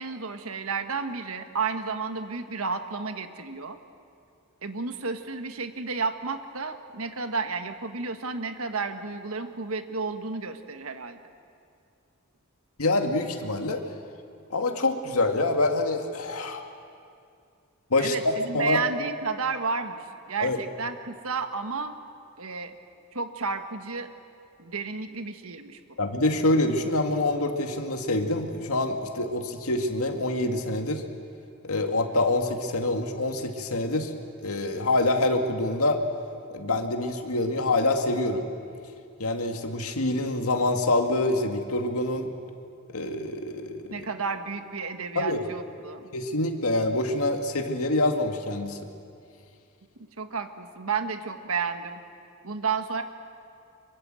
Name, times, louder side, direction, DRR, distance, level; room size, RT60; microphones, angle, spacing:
voice 1, 0.0-3.8 4.6-11.2 18.0-21.9 22.4-22.8 23.1-24.1 24.6-25.8 43.9-46.1 50.2-52.0 52.4-53.0, right 4 dB, 75° right, 8 dB, 1.5 m, -32 dB
voice 2, 12.8-13.8 14.5-16.7 17.9-18.8 20.4-20.6 26.0-31.0 31.6-34.1 34.4-36.0 36.5-38.5 39.2-42.3 42.9-44.1 45.2-45.4 46.1-48.8, left 2 dB, 85° left, 4 dB, 2.1 m, -26 dB
25.0 x 23.5 x 7.7 m, 2.4 s
head